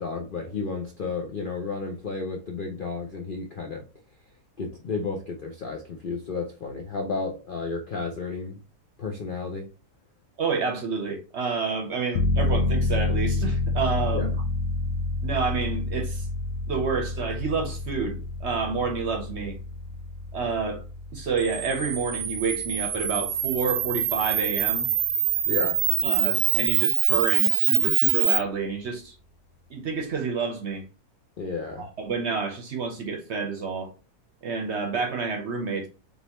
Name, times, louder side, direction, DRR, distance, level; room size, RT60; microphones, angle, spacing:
voice 1, 0.0-3.9 4.6-8.6 9.0-9.7 14.1-14.3 25.5-25.8 31.4-31.9, left 4 dB, 55° left, 0.6 m, -32 dB
voice 2, 10.4-14.3 15.2-16.3 16.7-19.6 20.3-20.8 21.1-24.9 26.0-29.1 29.7-30.8 31.8-33.9 34.4-35.9, right 5 dB, 55° right, 0.9 m, -29 dB
sound 1, 12.1-24.7 25.0-25.1, left 2 dB, 85° left, 1.2 m, -29 dB
Camera, 21.4-28.4, right 10 dB, 75° right, 1.1 m, -24 dB
4.0 x 3.4 x 2.9 m
omnidirectional pair, 1.7 m